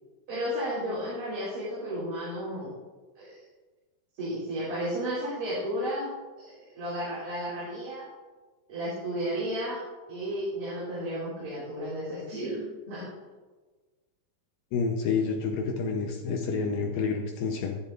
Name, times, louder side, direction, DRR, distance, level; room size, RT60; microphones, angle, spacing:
voice 1, 0.3-2.7 3.2-3.4 4.1-8.0 8.7-9.8 10.1-13.1, equal, 40° right, -9 dB, 4.9 m, -33 dB
voice 2, 14.7-17.8, left 5 dB, 75° left, 2 dB, 2.2 m, -29 dB
14.0 x 12.0 x 2.5 m, 1.3 s
omnidirectional pair, 4.9 m